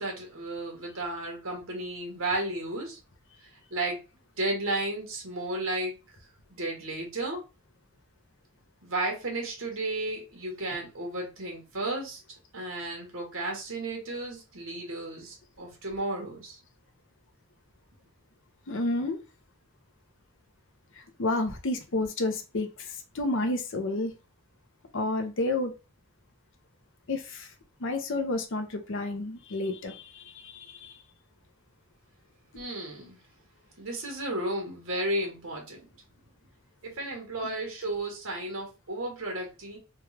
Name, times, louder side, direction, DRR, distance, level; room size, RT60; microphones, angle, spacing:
voice 1, 0.0-3.0 3.7-4.0 4.4-5.9 6.5-7.4 8.8-12.2 12.5-16.6 32.5-33.2 33.8-35.9 36.8-39.8, right 2 dB, 70° right, 1.3 m, -33 dB
voice 2, 18.7-19.2 21.0-24.1 24.9-25.7 27.1-27.5 27.8-31.0, left 2 dB, 60° left, 0.7 m, -30 dB
3.4 x 2.4 x 3.3 m
head